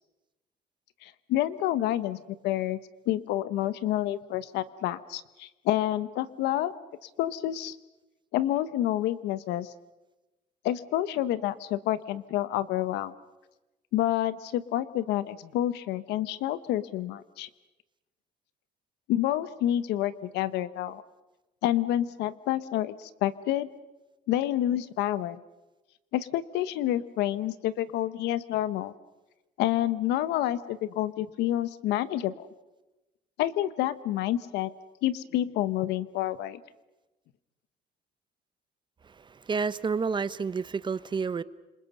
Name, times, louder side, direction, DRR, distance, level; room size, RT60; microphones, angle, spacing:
voice 1, 1.0-2.8 3.1-6.7 7.0-7.8 8.3-9.7 10.6-13.1 13.9-17.5 19.1-21.0 21.6-23.7 24.3-25.4 26.1-28.9 29.6-32.5 33.4-34.7 35.0-36.6, left 13 dB, 90° left, 14 dB, 1.1 m, -28 dB
voice 2, 39.1-41.4, right 5 dB, 30° right, 15 dB, 0.9 m, -30 dB
30.0 x 27.0 x 5.5 m, 1.0 s
cardioid pair, 110°, 17 cm